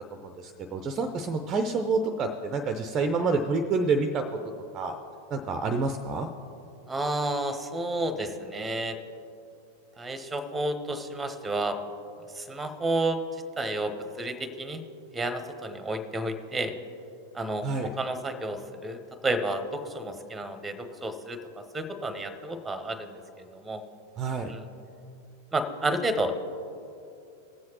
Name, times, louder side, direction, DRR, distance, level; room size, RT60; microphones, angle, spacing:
voice 1, 0.0-4.2 4.7-5.0 5.3-6.3 17.6-17.9 24.2-24.5, right 3 dB, 25° right, 7 dB, 0.5 m, -28 dB
voice 2, 6.9-9.0 10.0-11.8 12.3-13.2 13.6-14.8 15.1-16.7 17.3-23.8 24.5-24.7 25.5-26.3, right 1 dB, 10° right, 10 dB, 0.9 m, -31 dB
19.0 x 7.7 x 2.9 m, 2.6 s
figure-of-eight pair, 90°, 0 cm